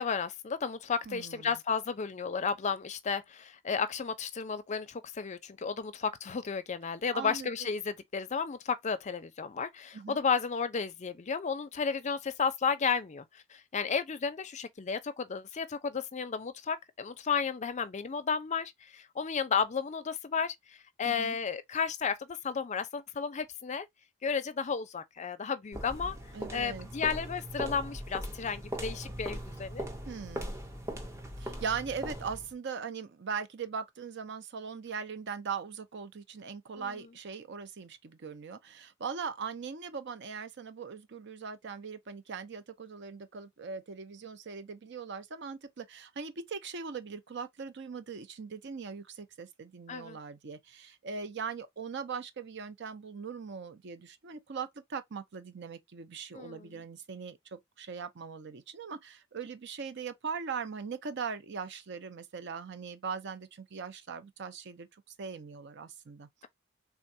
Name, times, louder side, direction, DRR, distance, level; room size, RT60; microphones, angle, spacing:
voice 1, 0.0-23.9 24.2-26.2 26.5-29.9 36.8-36.9 49.9-50.2 56.3-56.8, left 6 dB, 35° left, 0.5 m, -33 dB
voice 2, 1.1-1.6 7.1-7.5 9.9-10.2 21.0-21.4 26.3-26.9 30.0-30.5 31.4-66.5, right 5 dB, 60° right, 0.6 m, -40 dB
sound 1, 25.7-32.5, equal, 15° right, 0.7 m, -40 dB
3.6 x 2.2 x 2.6 m
head